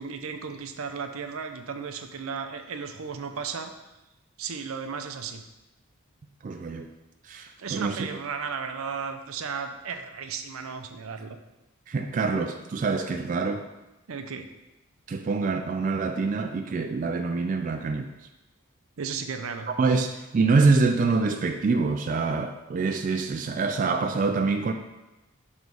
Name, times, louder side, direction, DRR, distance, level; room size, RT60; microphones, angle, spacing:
voice 1, 0.0-3.7 4.4-5.4 7.6-11.4 14.1-14.5 19.0-19.7, right 5 dB, 85° right, 7 dB, 0.5 m, -34 dB
voice 2, 6.4-6.9 7.2-8.1 11.9-13.7 15.1-18.1 19.7-24.7, right 4 dB, 40° right, 5 dB, 0.3 m, -25 dB
6.1 x 3.2 x 5.2 m, 1.0 s
head